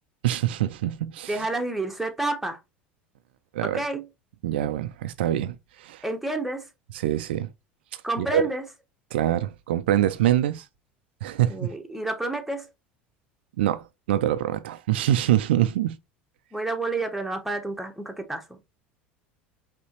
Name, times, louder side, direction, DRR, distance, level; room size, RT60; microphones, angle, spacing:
voice 1, 0.2-1.5 3.5-3.8 4.4-6.0 7.0-7.5 8.2-8.4 9.1-10.6 11.2-11.7 13.6-16.0, right 12 dB, 70° right, 0.3 m, -25 dB
voice 2, 1.3-2.6 3.6-4.1 6.0-6.7 8.0-8.6 11.5-12.7 16.5-18.6, right 2 dB, 5° right, 1.0 m, -29 dB
5.3 x 2.9 x 2.8 m
figure-of-eight pair, 75°, 6 cm